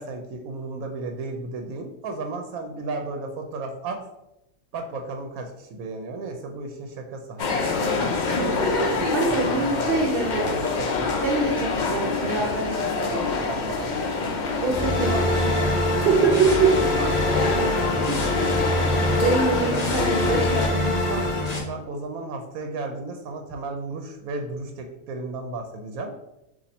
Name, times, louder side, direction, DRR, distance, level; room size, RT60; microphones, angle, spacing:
voice 1, 0.0-4.0 4.7-8.0 8.4-11.2 13.0-14.4 17.0-18.3 21.7-26.1, right 3 dB, 80° right, 4 dB, 1.0 m, -34 dB
sound 1, 7.4-20.7, left 4 dB, 55° left, 0.5 m, -26 dB
voice 2, 9.0-10.5 11.2-13.2 14.6-16.7 18.1-18.3 19.2-21.3, right 4 dB, 50° right, -2 dB, 0.8 m, -25 dB
sound 2, 14.7-21.6, left 1 dB, 35° left, 0.8 m, -24 dB
4.1 x 2.6 x 4.1 m, 0.89 s
omnidirectional pair, 1.5 m